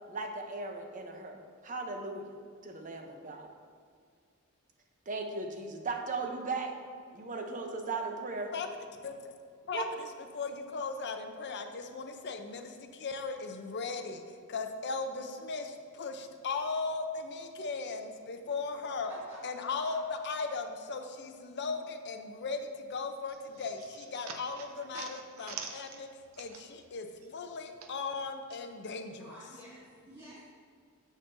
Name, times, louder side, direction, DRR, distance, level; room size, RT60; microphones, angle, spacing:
voice 1, 0.1-3.5 5.1-6.7 7.1-8.5 9.7-9.9, right 3 dB, 40° right, 4 dB, 0.7 m, -37 dB
voice 2, 9.7-10.1 10.3-19.1 19.4-26.1 26.4-29.4, left 4 dB, 55° left, 6 dB, 0.6 m, -37 dB
voice 3, 19.0-20.0 29.2-30.4, right 1 dB, 20° right, -12 dB, 2.0 m, -50 dB
sound 1, 23.3-26.9 27.2-28.6, right 6 dB, 75° right, 0.7 m, -46 dB
9.0 x 7.3 x 2.6 m, 2.2 s
head